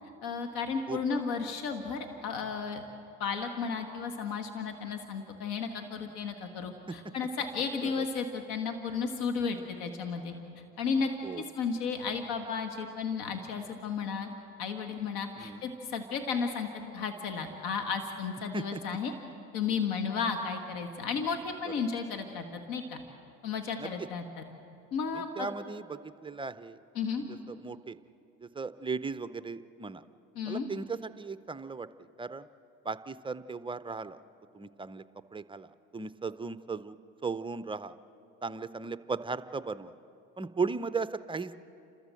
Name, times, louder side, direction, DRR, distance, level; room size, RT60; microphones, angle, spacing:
voice 1, 0.2-2.9 3.2-11.1 11.4-14.3 14.6-16.7 16.9-19.1 19.5-23.0 23.4-24.4 24.9-25.5 27.0-27.2 30.4-30.7, left 5 dB, 65° left, 6 dB, 1.8 m, -33 dB
voice 2, 0.9-1.2 6.9-7.0 7.8-8.1 11.2-11.4 15.4-15.6 18.5-18.8 23.8-24.1 25.1-26.8 27.3-28.0 28.4-30.0 30.5-32.5 32.8-34.2 34.5-35.0 35.3-37.0 37.2-37.9 38.4-39.9 40.4-41.6, right 4 dB, 15° right, 13 dB, 0.5 m, -37 dB
30.0 x 13.5 x 7.7 m, 2.7 s
supercardioid pair, 95°, 40 cm